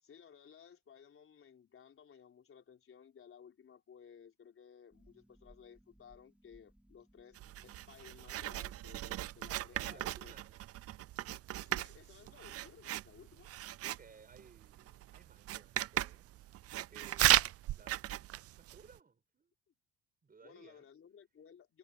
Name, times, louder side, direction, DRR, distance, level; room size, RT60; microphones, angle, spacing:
voice 1, 0.0-7.4 7.6-10.3 11.5-13.5 20.4-21.8, left 7 dB, 35° left, 4.1 m, -58 dB
Harp, 4.9-10.2, right 1 dB, 5° right, 7.6 m, -66 dB
Writing, 7.3-19.0, right 14 dB, 40° right, 0.5 m, -36 dB
voice 2, 9.7-10.6 13.8-16.4 16.7-18.1 18.6-19.5 20.2-20.9, right 5 dB, 25° right, 7.4 m, -60 dB
cardioid pair, 110°, 36 cm